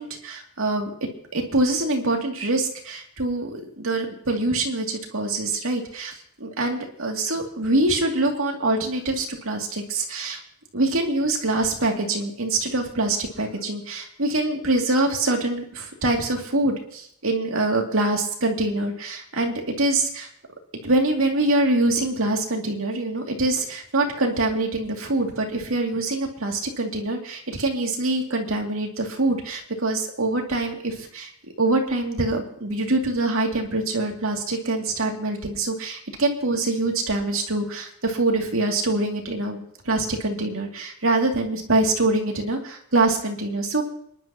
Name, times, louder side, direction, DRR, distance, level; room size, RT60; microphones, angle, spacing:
voice 1, 0.0-10.4 10.7-20.3 20.8-31.3 31.6-43.8, right 2 dB, 70° right, 1 dB, 2.4 m, -24 dB
26.5 x 11.0 x 2.9 m, 0.68 s
head